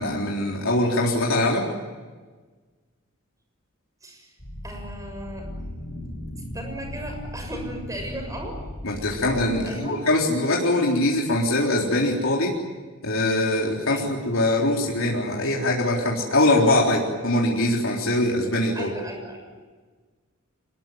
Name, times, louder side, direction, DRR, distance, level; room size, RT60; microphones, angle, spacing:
voice 1, 0.0-1.7 8.8-12.5 13.0-18.9, left 1 dB, 80° left, -2 dB, 3.9 m, -22 dB
sound 1, 4.4-9.4, left 1 dB, 40° left, 7.6 m, -37 dB
voice 2, 4.6-5.5 6.5-8.7 9.6-10.0 13.9-14.1 18.7-19.6, right 1 dB, 15° right, 3 dB, 6.7 m, -36 dB
25.0 x 21.0 x 9.5 m, 1.4 s
head